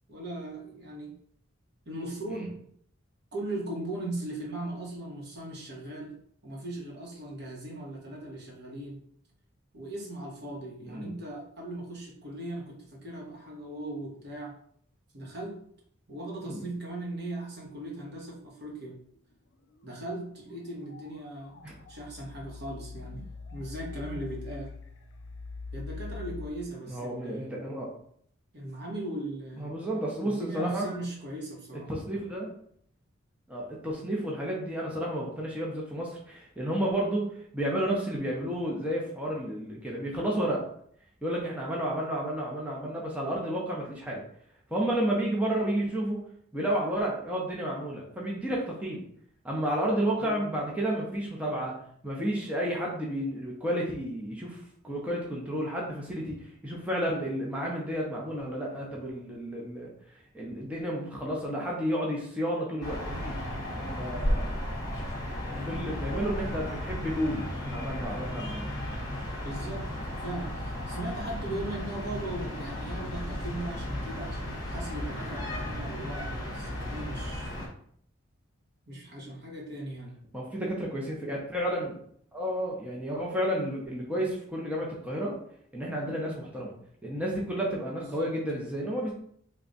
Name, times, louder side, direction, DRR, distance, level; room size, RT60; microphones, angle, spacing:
voice 1, 0.1-1.1 1.8-2.6 3.3-9.0 9.7-14.5 15.1-15.6 16.1-19.0 19.8-21.5 21.9-24.7 25.7-27.6 28.5-29.7 30.2-31.9 50.2-50.3 65.5-65.9 69.4-69.9 70.2-77.7 78.9-80.2 88.0-88.3, right 1 dB, 50° right, -2 dB, 1.1 m, -38 dB
sound 1, 20.9-21.2 21.5-26.5, left 4 dB, 55° left, 0.4 m, -42 dB
voice 2, 26.9-27.9 29.6-30.9 31.9-32.5 33.5-40.7 41.2-44.2 44.7-46.2 46.5-49.0 49.4-59.9 60.3-63.4 63.7-64.6 65.4-68.7 80.3-82.0 82.3-85.4 85.7-86.7 87.0-89.1, equal, 5° right, -4 dB, 0.6 m, -31 dB
sound 2, 62.8-77.7, left 1 dB, 20° left, 0.9 m, -34 dB
3.4 x 2.3 x 3.9 m, 0.63 s
head